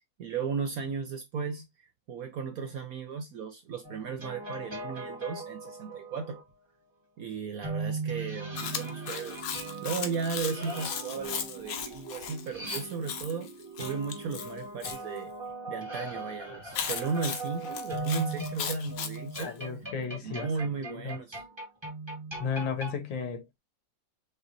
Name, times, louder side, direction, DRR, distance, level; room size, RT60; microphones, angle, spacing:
voice 1, 0.2-1.6 2.1-6.4 7.2-9.5 9.8-13.5 13.8-15.3 15.7-19.5 20.2-21.4, right 5 dB, 65° right, 0.9 m, -35 dB
sound 1, 3.8-6.4 7.6-13.3 13.8-23.0, right 2 dB, 20° right, 1.0 m, -39 dB
sound 2, 8.2-15.3, right 4 dB, 85° right, 1.6 m, -47 dB
Chewing mastication, 8.6-15.0 16.7-19.5, left 7 dB, 60° left, 1.0 m, -37 dB
voice 2, 19.4-20.5 20.8-21.2 22.4-23.6, left 6 dB, 80° left, 1.8 m, -34 dB
6.0 x 2.5 x 2.6 m
omnidirectional pair, 2.0 m